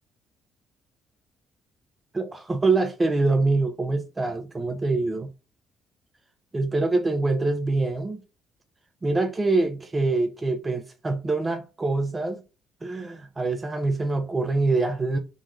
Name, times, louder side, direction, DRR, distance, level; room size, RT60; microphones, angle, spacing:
voice 1, 2.1-5.3 6.5-8.2 9.0-12.4 12.8-15.2, right 3 dB, 25° right, 0.6 m, -25 dB
3.7 x 2.4 x 3.1 m
supercardioid pair, 60°, 0 cm